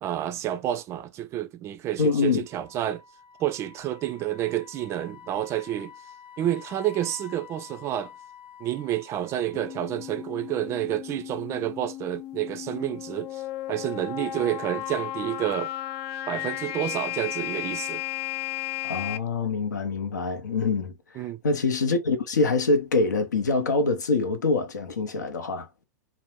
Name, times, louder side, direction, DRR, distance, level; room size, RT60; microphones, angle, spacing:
voice 1, 0.0-3.0 3.4-5.9 6.4-8.1 8.6-13.4 13.7-15.7 16.3-18.0 21.2-21.4, right 12 dB, 30° right, 0.4 m, -29 dB
voice 2, 2.0-2.5 18.8-20.9 21.4-25.7, left 4 dB, 80° left, 0.7 m, -25 dB
Wind instrument woodwind instrument, 2.5-10.7, left 8 dB, 25° left, 0.9 m, -49 dB
sound 1, 9.5-19.2, left 14 dB, 40° left, 0.4 m, -34 dB
2.6 x 2.0 x 3.1 m
figure-of-eight pair, 100°, 9 cm